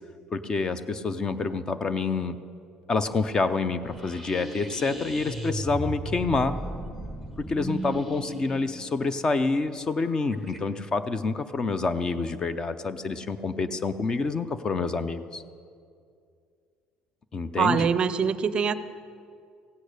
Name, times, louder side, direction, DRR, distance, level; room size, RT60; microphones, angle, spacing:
voice 1, 0.3-2.4 2.9-6.6 7.4-15.4 17.3-17.9, left 4 dB, 25° left, 13 dB, 0.6 m, -27 dB
sound 1, 3.8-10.6, right 1 dB, 5° left, 1.1 m, -36 dB
voice 2, 17.6-18.8, right 6 dB, 35° right, 14 dB, 0.5 m, -23 dB
16.0 x 8.4 x 6.6 m, 2.3 s
cardioid pair, 120°, 3 cm